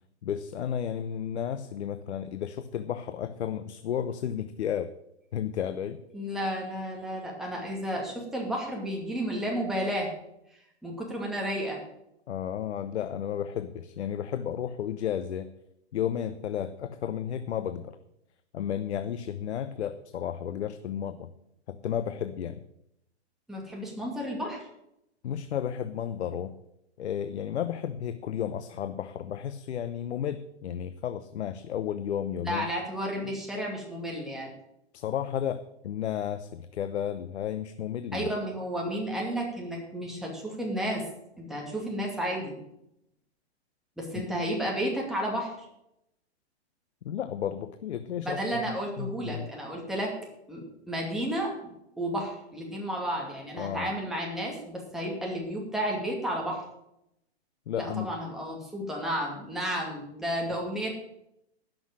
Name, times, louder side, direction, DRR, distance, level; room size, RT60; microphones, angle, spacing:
voice 1, 0.2-4.9 5.3-6.0 12.3-15.5 15.9-18.0 18.5-21.3 21.7-22.6 25.2-26.5 27.0-32.7 34.9-38.3 44.1-44.3 47.0-48.4 49.0-49.5 53.5-53.9 57.7-58.2, left 9 dB, 75° left, 11 dB, 0.9 m, -33 dB
voice 2, 6.1-10.1 10.8-11.8 23.5-24.6 32.4-34.5 38.1-41.0 41.4-42.6 44.0-45.7 48.2-50.1 50.5-56.6 57.8-60.9, equal, ahead, -2 dB, 2.4 m, -32 dB
12.0 x 6.4 x 8.8 m, 0.81 s
hypercardioid pair, 155°, 34 cm